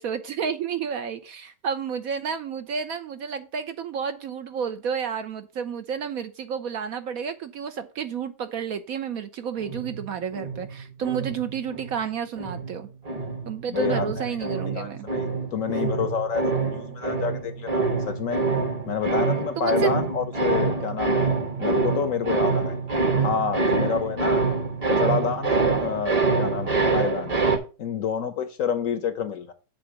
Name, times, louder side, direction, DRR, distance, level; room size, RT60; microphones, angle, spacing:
voice 1, 0.0-12.9 13.5-15.1 19.6-19.9, right 7 dB, 65° right, 1.0 m, -31 dB
sound 1, 9.6-12.0 12.4-27.6, right 4 dB, 25° right, 0.9 m, -26 dB
voice 2, 13.7-14.3 14.7-15.2 15.5-18.4 18.9-22.8 23.2-24.4 24.9-27.3 27.8-29.5, left 6 dB, 60° left, 1.0 m, -28 dB
7.9 x 3.7 x 6.3 m
omnidirectional pair, 1.9 m